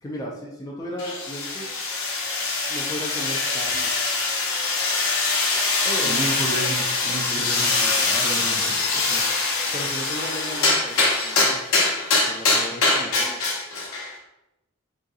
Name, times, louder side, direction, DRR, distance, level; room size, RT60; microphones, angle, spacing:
voice 1, 0.0-1.7 2.7-3.9 5.8-6.2 9.7-11.6 12.3-13.4, equal, 15° left, -3 dB, 0.3 m, -35 dB
sound 1, 1.0-14.1, left 3 dB, 70° left, 0.7 m, -23 dB
voice 2, 5.9-9.3, right 2 dB, 25° right, -3 dB, 0.7 m, -32 dB
3.7 x 2.6 x 2.3 m, 0.88 s
head